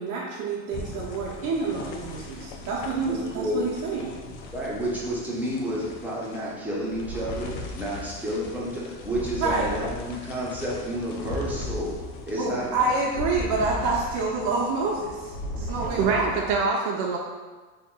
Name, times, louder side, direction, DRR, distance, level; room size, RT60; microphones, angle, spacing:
voice 1, 0.0-4.2 9.4-9.7 12.4-16.5, right 3 dB, 45° right, -5 dB, 0.8 m, -28 dB
sound 1, 0.7-16.6, left 2 dB, 70° left, 0.7 m, -38 dB
voice 2, 3.0-3.6 4.5-11.9 12.3-12.9, equal, 5° right, -7 dB, 0.9 m, -30 dB
voice 3, 16.0-17.2, right 4 dB, 75° right, 0 dB, 0.6 m, -24 dB
2.8 x 2.5 x 3.7 m, 1.3 s
supercardioid pair, 105°, 46 cm